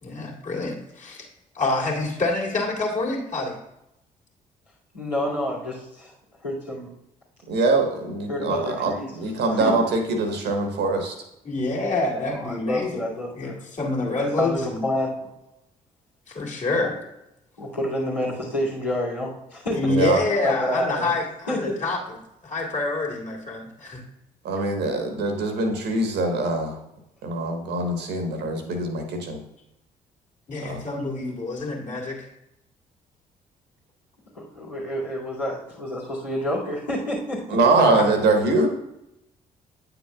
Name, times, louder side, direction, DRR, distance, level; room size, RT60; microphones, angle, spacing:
voice 1, 0.0-1.3 1.5-3.6 11.5-13.0 13.3-14.8 16.3-16.9 19.7-22.0 22.4-24.0 30.5-32.3 37.8-38.1, left 2 dB, 35° left, -3 dB, 2.3 m, -27 dB
voice 2, 4.9-6.1 6.4-6.9 8.3-9.1 9.6-9.7 12.3-13.6 14.1-15.1 16.8-16.9 17.6-19.9 20.4-21.1 21.5-21.8 34.3-37.6, left 1 dB, 90° left, -11 dB, 2.5 m, -28 dB
voice 3, 7.5-11.2 19.9-20.2 24.4-26.7 27.2-29.4 30.6-30.8 37.5-38.7, right 3 dB, 55° right, 4 dB, 1.3 m, -23 dB
9.2 x 6.9 x 2.4 m, 0.85 s
figure-of-eight pair, 45°, 20 cm